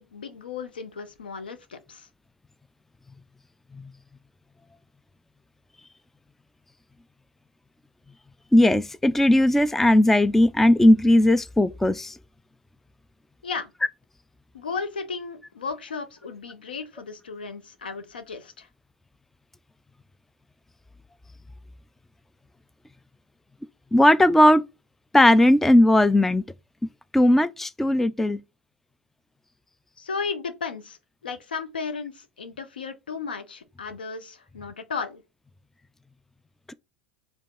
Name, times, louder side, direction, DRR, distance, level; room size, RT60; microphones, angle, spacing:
voice 1, 0.0-2.1 13.4-13.7 14.5-18.7 30.0-31.0 31.2-35.2, left 5 dB, 75° left, 0.9 m, -34 dB
voice 2, 8.5-12.2 23.9-24.6 25.1-26.4 27.1-28.4 36.7-36.8, left 1 dB, 5° left, 0.3 m, -17 dB
5.1 x 3.4 x 5.5 m
figure-of-eight pair, 80°, 5 cm